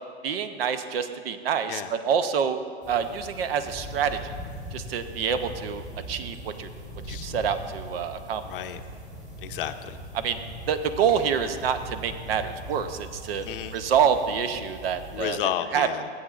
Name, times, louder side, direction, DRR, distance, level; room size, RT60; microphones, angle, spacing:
voice 1, 0.2-4.2 4.7-6.7 7.1-8.4 10.1-10.4 10.7-13.5 13.7-15.4 15.7-15.9, right 7 dB, 65° right, 10 dB, 0.7 m, -27 dB
sound 1, 2.8-15.4, equal, 25° right, 2.1 m, -41 dB
voice 2, 8.5-8.8 9.4-10.0 13.4-13.7 15.1-16.1, left 11 dB, 55° left, 9 dB, 0.6 m, -32 dB
16.5 x 7.9 x 2.4 m, 2.1 s
hypercardioid pair, 135°, 33 cm